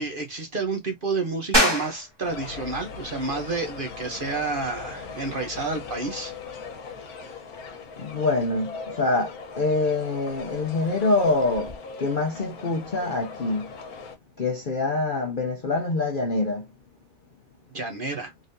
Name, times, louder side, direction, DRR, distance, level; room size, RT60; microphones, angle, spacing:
voice 1, 0.0-6.3 17.7-18.3, right 3 dB, 45° right, 0.9 m, -30 dB
sound 1, 1.5-11.8, equal, 20° right, 1.3 m, -32 dB
sound 2, 2.2-14.2, left 5 dB, 85° left, 1.4 m, -39 dB
voice 2, 8.0-13.7 14.4-16.7, left 3 dB, 45° left, 0.7 m, -25 dB
3.8 x 3.4 x 2.6 m
omnidirectional pair, 1.6 m